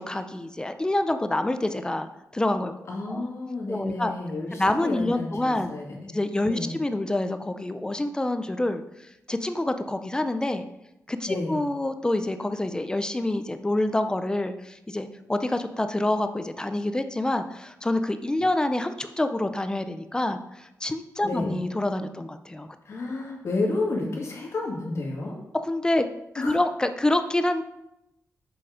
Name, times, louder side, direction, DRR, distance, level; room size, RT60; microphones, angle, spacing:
voice 1, 0.0-2.1 2.3-2.7 3.1-3.3 3.7-4.1 4.5-5.7 6.1-8.8 9.3-10.6 11.1-22.7 25.6-26.1 26.3-27.6, left 1 dB, 15° left, 9 dB, 0.5 m, -27 dB
voice 2, 2.9-6.1 6.5-6.8 11.3-11.6 21.2-21.6 22.9-25.3 26.4-26.6, left 2 dB, 55° left, -2 dB, 2.0 m, -31 dB
6.9 x 5.2 x 5.0 m, 0.88 s
wide cardioid pair, 135°, 6 cm